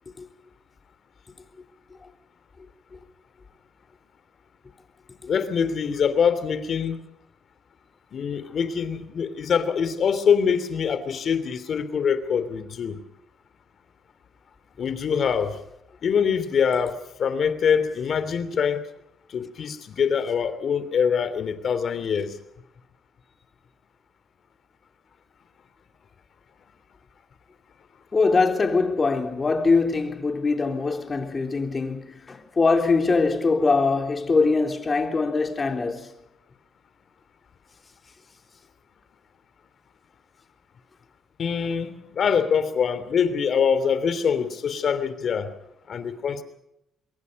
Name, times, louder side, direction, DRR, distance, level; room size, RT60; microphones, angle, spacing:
voice 1, 5.3-7.0 8.1-13.0 14.8-15.6 16.0-18.8 19.3-22.4 41.4-45.5 45.9-46.4, left 7 dB, 55° left, 3.1 m, -24 dB
voice 2, 28.1-36.1, left 4 dB, 30° left, 3.7 m, -22 dB
25.5 x 22.5 x 5.4 m
cardioid pair, 90°, 0 cm